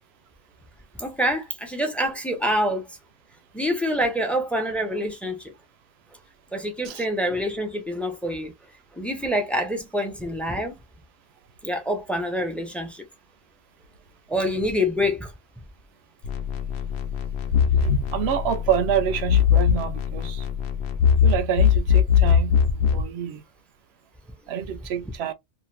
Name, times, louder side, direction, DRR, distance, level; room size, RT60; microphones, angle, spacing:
voice 1, 1.0-2.8 3.5-5.5 6.5-8.5 8.9-10.7 11.6-13.0 14.3-15.3, equal, ahead, 0.6 m, -26 dB
sound 1, 16.2-23.1, left 8 dB, 80° left, 0.8 m, -21 dB
voice 2, 17.8-20.5 21.2-23.4 24.5-25.3, right 8 dB, 85° right, 0.8 m, -27 dB
2.6 x 2.4 x 3.1 m
omnidirectional pair, 1.1 m